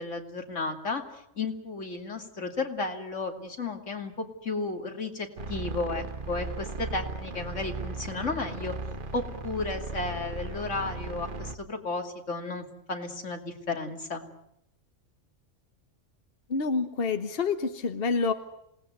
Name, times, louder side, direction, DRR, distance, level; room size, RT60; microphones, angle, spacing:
voice 1, 0.0-8.7 9.1-14.2, left 3 dB, 75° left, 4 dB, 3.0 m, -33 dB
sound 1, 5.4-11.6, right 3 dB, 45° right, 1.3 m, -37 dB
voice 2, 16.5-18.3, left 4 dB, 50° left, 8 dB, 1.3 m, -27 dB
27.5 x 19.0 x 9.5 m, 0.82 s
omnidirectional pair, 1.3 m